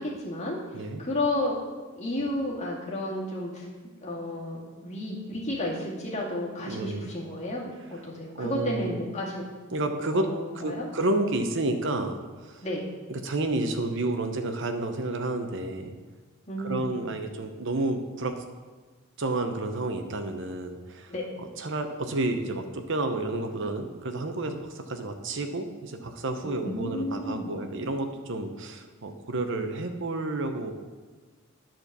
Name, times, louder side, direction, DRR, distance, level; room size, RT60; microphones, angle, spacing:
voice 1, 0.0-0.6 1.0-1.6 2.0-3.7 4.0-7.6 7.9-9.4 10.1-10.9 12.6-12.8 16.5-16.9 21.1-21.2 26.4-27.5, left 1 dB, 35° left, -4 dB, 2.1 m, -32 dB
voice 2, 6.7-7.1 8.3-8.9 9.7-10.3 10.5-12.6 13.1-15.9 16.6-18.3 19.2-21.1 21.4-30.7, right 2 dB, 65° right, 6 dB, 0.9 m, -30 dB
9.7 x 4.5 x 6.7 m, 1.4 s
head